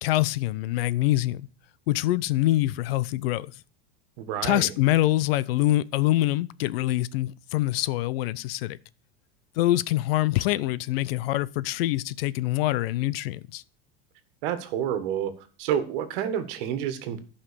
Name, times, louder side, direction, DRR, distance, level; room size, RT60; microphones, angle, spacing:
voice 1, 0.0-1.5 1.9-3.5 4.4-8.8 9.6-13.6, left 16 dB, 70° left, 0.7 m, -25 dB
voice 2, 4.2-4.7 14.4-15.3 15.6-17.2, right 9 dB, 60° right, 1.7 m, -29 dB
11.5 x 5.7 x 6.9 m
supercardioid pair, 150°, 31 cm